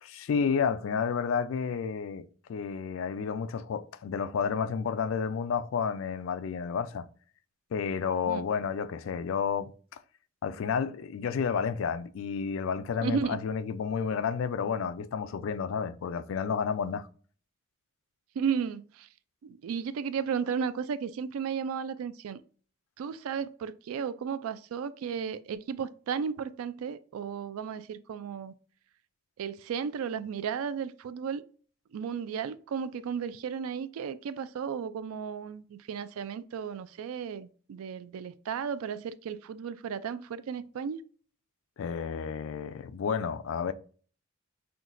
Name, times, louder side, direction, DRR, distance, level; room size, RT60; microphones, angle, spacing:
voice 1, 0.0-7.1 7.7-10.0 10.4-17.1 41.8-43.7, left 6 dB, 70° left, 0.3 m, -31 dB
voice 2, 13.0-13.4 18.4-19.1 19.4-22.4 23.0-28.5 29.4-31.4 31.9-41.0, right 7 dB, 80° right, 0.3 m, -34 dB
5.8 x 2.3 x 2.5 m
head